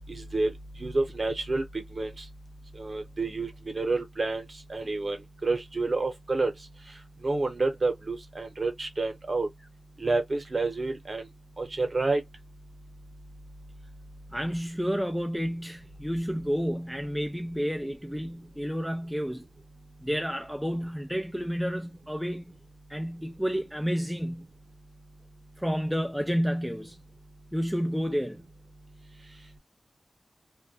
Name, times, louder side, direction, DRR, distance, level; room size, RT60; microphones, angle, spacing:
voice 1, 0.1-0.5 0.8-1.6 1.9-2.1 2.8-4.4 4.7-5.2 5.4-6.5 7.2-9.5 10.0-11.2 11.6-12.2, right 3 dB, 40° right, 0.9 m, -28 dB
voice 2, 14.3-19.5 20.0-22.4 22.9-24.5 25.6-27.0 27.5-28.4, equal, ahead, 0.3 m, -30 dB
2.3 x 2.1 x 2.7 m
wide cardioid pair, 105°, 0 cm